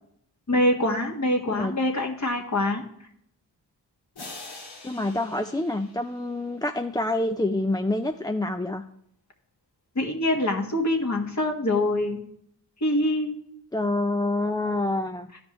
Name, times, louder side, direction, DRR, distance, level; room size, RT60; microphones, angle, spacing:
voice 1, 0.5-2.8 9.9-12.2 12.8-13.4, left 1 dB, 40° left, 2 dB, 1.6 m, -24 dB
sound 1, 4.2-6.8, left 2 dB, 70° left, 2.1 m, -44 dB
voice 2, 4.8-8.8 13.7-15.3, left 2 dB, 10° left, 6 dB, 0.4 m, -27 dB
12.0 x 5.1 x 3.1 m, 0.71 s
cardioid pair, 45°, 41 cm